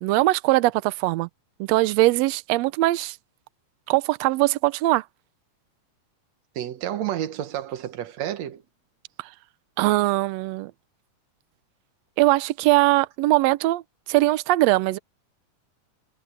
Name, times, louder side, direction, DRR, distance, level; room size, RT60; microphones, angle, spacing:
voice 1, 0.0-1.3 1.6-3.2 3.9-5.0 9.2-9.3 9.8-10.7 12.2-13.8 14.1-15.0, right 18 dB, 85° right, 1.5 m, -21 dB
voice 2, 6.6-8.6, right 11 dB, 65° right, 2.2 m, -30 dB
omnidirectional pair, 3.6 m